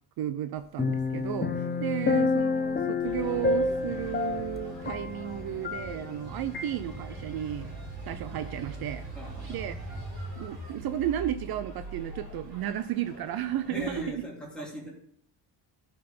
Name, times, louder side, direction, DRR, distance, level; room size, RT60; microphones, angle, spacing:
voice 1, 0.2-7.7 8.1-9.0 9.5-9.8 10.4-14.2, right 11 dB, 60° right, 10 dB, 0.6 m, -33 dB
sound 1, 0.8-6.2 6.5-6.7, left 4 dB, 25° left, 0.6 m, -29 dB
sound 2, 3.0-14.1, right 2 dB, 45° right, 3.6 m, -42 dB
voice 2, 9.2-9.7 13.7-14.9, left 1 dB, ahead, -4 dB, 2.7 m, -39 dB
13.0 x 5.5 x 4.3 m, 0.63 s
cardioid pair, 150°, 42 cm